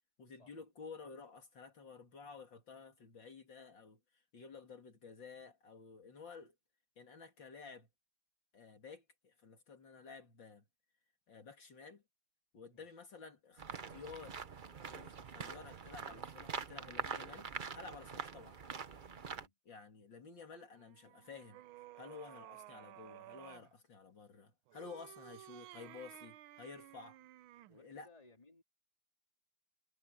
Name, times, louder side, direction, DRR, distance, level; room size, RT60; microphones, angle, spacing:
voice 1, 0.2-6.5 7.0-7.9 8.5-10.6 11.3-12.0 12.5-14.4 14.8-18.6 19.7-21.6 22.0-27.2 27.7-28.1, left 4 dB, 65° left, 3.0 m, -53 dB
sound 1, 13.6-19.5, right 6 dB, 50° right, 0.5 m, -44 dB
voice 2, 19.3-19.6 27.7-28.6, left 3 dB, 15° left, 3.8 m, -63 dB
sound 2, 20.7-23.7 24.7-27.8, right 14 dB, 85° right, 1.5 m, -55 dB
omnidirectional pair, 2.2 m